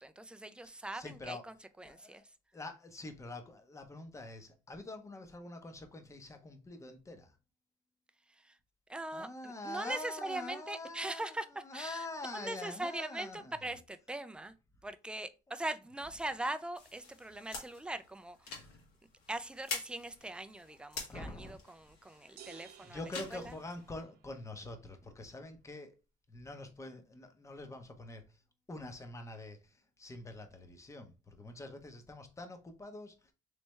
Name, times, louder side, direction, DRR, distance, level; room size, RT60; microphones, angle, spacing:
voice 1, 0.0-2.2 8.4-8.6 8.9-11.5 11.7-12.1 12.3-14.5 14.8-18.5 19.3-23.5, right 2 dB, 5° right, 0.3 m, -41 dB
voice 2, 0.6-1.4 1.8-2.2 2.5-7.4 9.1-11.4 11.6-13.8 21.1-21.6 22.1-22.3 22.8-25.9 26.3-28.2 28.7-33.3, left 2 dB, 15° left, 0.7 m, -45 dB
sound 1, 16.8-24.0, left 4 dB, 80° left, 1.5 m, -47 dB
sound 2, 22.4-24.4, right 10 dB, 70° right, 0.7 m, -56 dB
3.3 x 3.2 x 3.1 m
cardioid pair, 110°, 17 cm